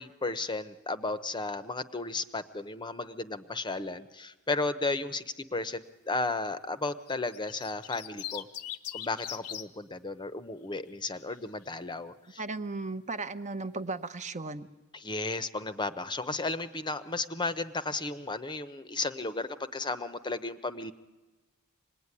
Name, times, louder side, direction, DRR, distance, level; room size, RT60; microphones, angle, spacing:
voice 1, 0.0-8.5 8.9-12.4 14.9-20.9, left 3 dB, 20° left, 12 dB, 0.8 m, -34 dB
sound 1, 7.1-9.7 10.9-11.4, left 11 dB, 80° left, 0.9 m, -40 dB
voice 2, 12.4-14.7, right 3 dB, 35° right, 11 dB, 0.8 m, -36 dB
26.0 x 19.5 x 9.8 m, 1.2 s
head